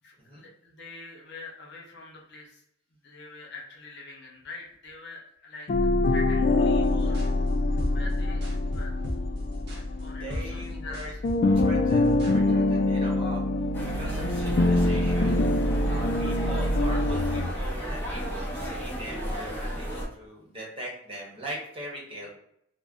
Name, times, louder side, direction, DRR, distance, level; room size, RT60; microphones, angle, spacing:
voice 1, 0.0-2.6 3.0-5.7 6.1-7.2 7.7-8.4 8.7-8.9 9.7-11.2 16.3-16.6, left 3 dB, 60° left, -1 dB, 0.8 m, -44 dB
sound 1, 5.7-10.9 11.2-17.5, left 2 dB, 45° left, 0.3 m, -25 dB
sound 2, 6.7-12.4, left 1 dB, 60° right, 0.7 m, -37 dB
voice 2, 10.0-11.1 11.5-13.4 13.8-15.5 15.9-22.3, right 1 dB, 30° right, -3 dB, 0.9 m, -41 dB
sound 3, 13.7-20.1, equal, 10° left, 0.6 m, -33 dB
2.5 x 2.1 x 3.5 m, 0.74 s
head